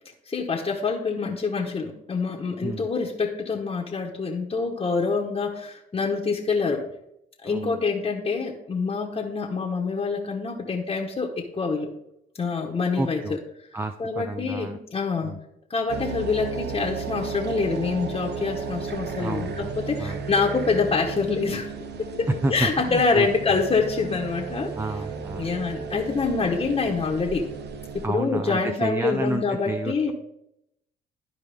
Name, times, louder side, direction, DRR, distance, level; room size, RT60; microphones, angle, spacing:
voice 1, 0.3-6.9 7.4-11.9 12.4-13.2 14.0-15.3 15.7-21.7 22.0-24.7 25.4-27.4 27.9-30.1, left 4 dB, 30° left, -2 dB, 1.2 m, -26 dB
voice 2, 7.4-7.7 12.9-13.4 13.7-14.8 15.2-15.4 19.2-20.2 22.4-23.6 24.7-25.5 28.0-30.1, right 2 dB, 10° right, 8 dB, 0.5 m, -31 dB
sound 1, 15.9-28.1, right 5 dB, 60° right, 0.8 m, -34 dB
12.0 x 4.7 x 3.5 m, 0.80 s
cardioid pair, 90°, 20 cm